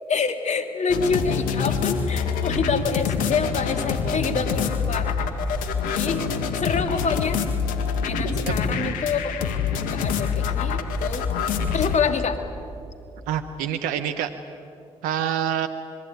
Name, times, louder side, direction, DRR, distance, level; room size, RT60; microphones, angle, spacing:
voice 1, 0.1-5.1 5.9-6.3 6.5-7.4 8.0-9.3 9.8-11.2 11.7-12.4, left 5 dB, 55° left, 7 dB, 2.7 m, -26 dB
sound 1, 0.9-12.0, left 6 dB, 80° left, 1.8 m, -26 dB
voice 2, 8.5-9.0 13.3-14.3 15.0-15.7, right 10 dB, 85° right, 8 dB, 0.9 m, -27 dB
27.0 x 22.0 x 9.3 m, 2.4 s
hypercardioid pair, 40°, 14 cm